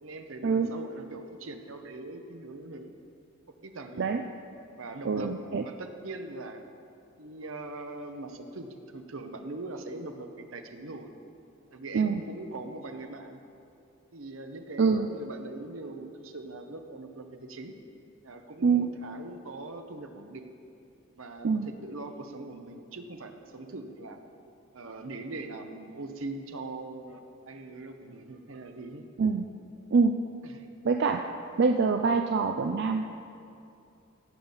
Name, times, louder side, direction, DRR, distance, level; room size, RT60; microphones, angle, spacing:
voice 1, 0.0-2.9 3.5-4.0 4.7-5.3 5.6-6.7 7.2-11.2 11.7-13.4 14.1-17.7 18.2-20.5 21.2-24.2 24.7-29.0 30.4-30.7, right 2 dB, 75° right, 6 dB, 1.0 m, -41 dB
voice 2, 5.0-5.6 11.9-12.2 14.8-15.1 18.6-18.9 21.4-21.7 29.2-29.4 29.9-30.1 30.8-31.2 31.6-33.0, right 5 dB, 55° right, 5 dB, 0.5 m, -25 dB
17.0 x 7.3 x 5.6 m, 2.6 s
head